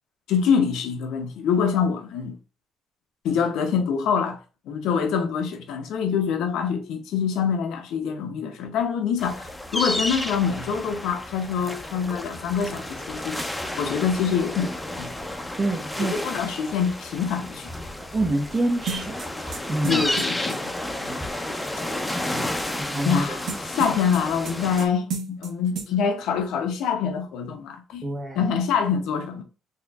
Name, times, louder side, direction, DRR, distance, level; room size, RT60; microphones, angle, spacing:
voice 1, 0.3-2.3 3.2-4.4 4.7-13.4 13.8-15.1 16.0-17.7 19.9-20.7 23.0-23.4 23.7-28.1 28.4-29.4, left 6 dB, 90° left, 0.7 m, -25 dB
sound 1, 9.2-24.9, left 1 dB, 10° left, 0.6 m, -32 dB
voice 2, 15.6-16.2 18.1-19.2 19.7-20.1 21.0-21.2 22.2-23.4 28.0-28.5, right 2 dB, 35° right, 0.9 m, -27 dB
sound 2, 18.9-20.6 23.5-24.9 25.1-25.5 25.8-25.9, right 5 dB, 85° right, 0.9 m, -32 dB
4.2 x 2.8 x 2.4 m
cardioid pair, 90°, 0 cm